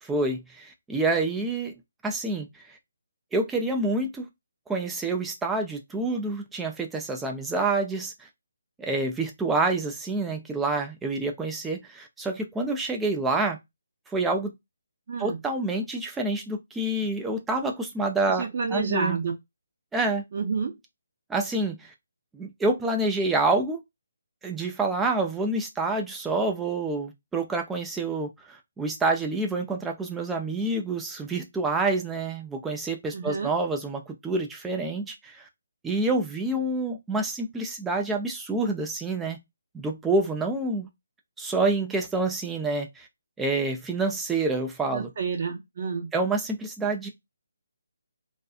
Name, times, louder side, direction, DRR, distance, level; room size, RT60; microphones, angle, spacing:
voice 1, 0.0-1.7 2.0-2.5 3.3-4.3 4.7-8.1 8.8-13.6 14.1-14.5 15.2-19.2 19.9-20.2 21.3-21.9 22.3-23.8 24.4-35.5 35.8-39.4 39.7-40.9 41.4-43.1 43.4-45.1 46.1-47.1, right 2 dB, 5° right, 0.4 m, -27 dB
voice 2, 15.1-15.4 18.3-19.3 20.3-20.7 33.1-33.5 44.9-46.1, right 5 dB, 45° right, 0.7 m, -29 dB
2.5 x 2.3 x 2.4 m
figure-of-eight pair, 150°, 0 cm